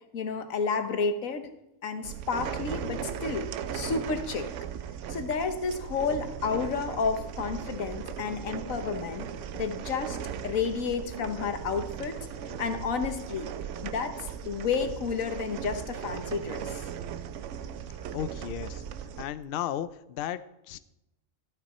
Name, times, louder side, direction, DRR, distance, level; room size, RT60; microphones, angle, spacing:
voice 1, 0.1-1.5 1.8-4.5 5.1-10.2 10.4-12.2 12.6-13.5 13.8-16.9, left 5 dB, 85° left, 8 dB, 1.4 m, -31 dB
sound 1, 2.0-19.3, right 8 dB, 70° right, 0.9 m, -38 dB
sound 2, 6.3-15.3, right 2 dB, 45° right, 2.5 m, -49 dB
voice 2, 18.1-18.8 19.2-20.4 20.7-20.8, left 10 dB, 60° left, 13 dB, 0.6 m, -34 dB
13.0 x 9.0 x 4.3 m, 0.89 s
omnidirectional pair, 1.4 m